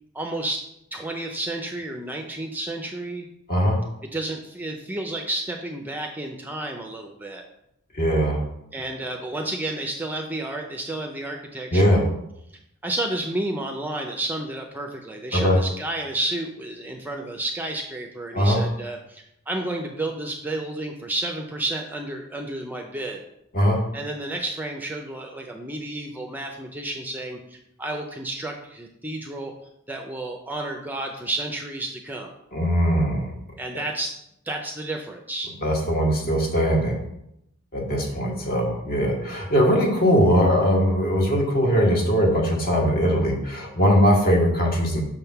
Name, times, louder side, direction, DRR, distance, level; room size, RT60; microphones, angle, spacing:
voice 1, 0.1-0.6 0.9-3.3 4.0-7.4 8.7-12.0 12.8-23.2 23.9-29.5 29.9-32.3 33.6-34.1 34.4-35.5, right 1 dB, 10° right, 2 dB, 0.5 m, -31 dB
voice 2, 7.9-8.4 11.7-12.0 15.3-15.6 18.3-18.6 23.5-23.8 32.5-33.3 35.6-37.0 37.7-45.0, equal, 45° left, 0 dB, 1.5 m, -20 dB
6.3 x 3.6 x 5.7 m, 0.79 s
head